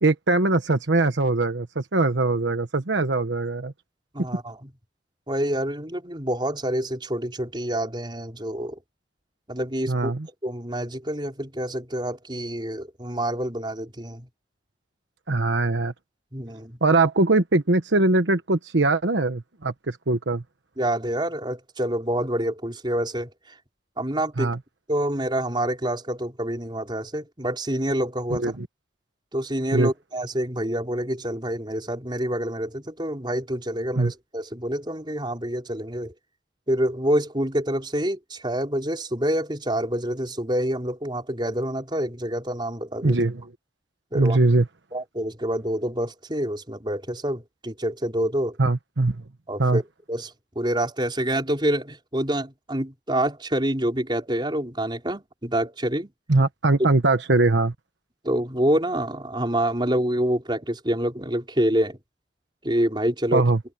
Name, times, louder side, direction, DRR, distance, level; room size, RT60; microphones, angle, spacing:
voice 1, 0.0-3.7 9.9-10.3 15.3-15.9 16.8-20.4 24.4-24.6 28.3-28.7 29.7-29.9 34.0-34.1 43.0-43.3 44.1-44.6 48.6-49.2 49.6-49.8 56.3-57.7 63.3-63.6, right 2 dB, 80° right, 1.2 m, -21 dB
voice 2, 4.1-4.7 5.3-8.8 9.5-10.1 10.4-14.3 16.3-16.8 20.8-23.3 24.0-24.5 24.9-28.5 29.3-36.1 36.7-43.2 44.1-44.4 44.9-48.6 49.5-49.8 50.1-56.1 58.2-62.0 62.6-63.4, right 1 dB, 25° right, 5.1 m, -27 dB
open air
head